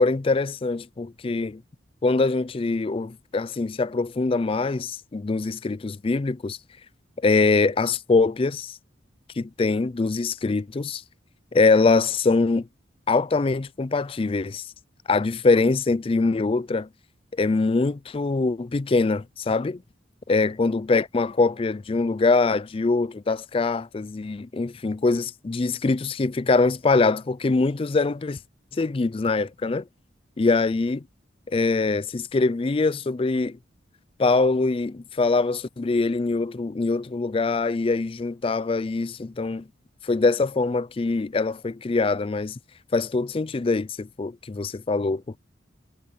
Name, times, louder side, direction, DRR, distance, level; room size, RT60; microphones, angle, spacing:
voice 1, 0.0-1.6 2.0-6.6 7.2-8.8 9.4-11.0 11.5-12.7 13.1-14.6 15.1-16.9 17.3-19.8 20.3-28.4 28.7-29.8 30.4-31.0 31.5-33.6 34.2-39.6 40.0-42.6 42.9-45.2, left 3 dB, 30° left, 0.4 m, -23 dB
head